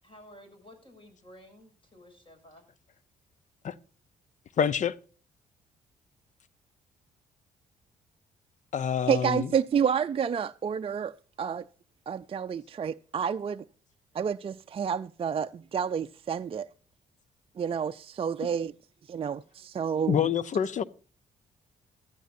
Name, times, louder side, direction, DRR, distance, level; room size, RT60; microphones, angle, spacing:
voice 1, 0.0-2.6, equal, 35° left, 7.0 m, -53 dB
voice 2, 4.6-5.0 8.7-9.5 20.1-20.8, left 8 dB, 55° left, 0.7 m, -26 dB
voice 3, 9.1-11.1 11.4-11.6 12.1-13.6 14.1-16.7 17.6-18.7 19.1-20.3, right 7 dB, 35° right, 0.5 m, -29 dB
15.5 x 13.0 x 2.7 m
supercardioid pair, 60°, 16 cm